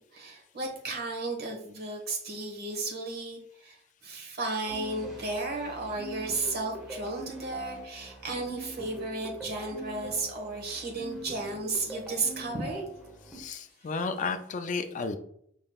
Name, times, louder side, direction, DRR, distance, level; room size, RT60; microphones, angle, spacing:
voice 1, 0.1-3.8 4.0-12.8, right 3 dB, 55° right, 2 dB, 1.3 m, -34 dB
sound 1, 4.7-13.4, right 1 dB, 5° right, 1.0 m, -43 dB
voice 2, 13.3-15.2, left 4 dB, 40° left, 8 dB, 0.3 m, -33 dB
5.1 x 3.7 x 2.3 m, 0.69 s
head